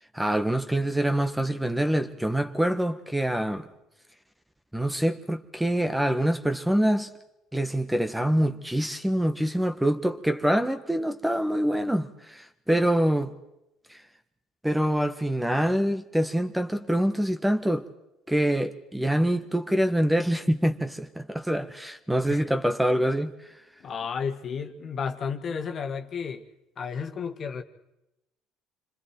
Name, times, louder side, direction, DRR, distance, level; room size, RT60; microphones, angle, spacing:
voice 1, 0.1-3.6 4.7-7.1 7.5-13.3 13.9-14.0 14.6-17.9 18.3-23.5, right 1 dB, 5° right, 1.5 m, -25 dB
voice 2, 23.8-26.5 26.8-27.6, left 6 dB, 50° left, 1.9 m, -32 dB
28.5 x 25.5 x 4.6 m
hypercardioid pair, 70°, 0 cm